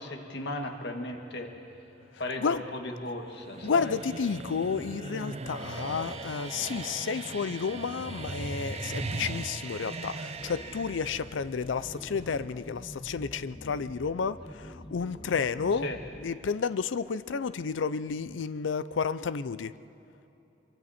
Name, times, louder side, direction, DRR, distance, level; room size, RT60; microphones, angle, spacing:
voice 1, 0.0-1.5 2.2-4.0 15.8-16.0, left 1 dB, 65° left, 4 dB, 1.8 m, -36 dB
sound 1, 1.3-12.5, right 3 dB, 35° right, 0.6 m, -39 dB
voice 2, 3.6-15.9 16.2-19.7, left 5 dB, 90° left, 15 dB, 0.5 m, -31 dB
Bowed string instrument, 5.6-11.0, left 1 dB, 5° left, 2.0 m, -50 dB
sound 2, 10.4-16.3, left 1 dB, 30° left, 0.9 m, -46 dB
25.5 x 23.5 x 4.3 m, 3.0 s
head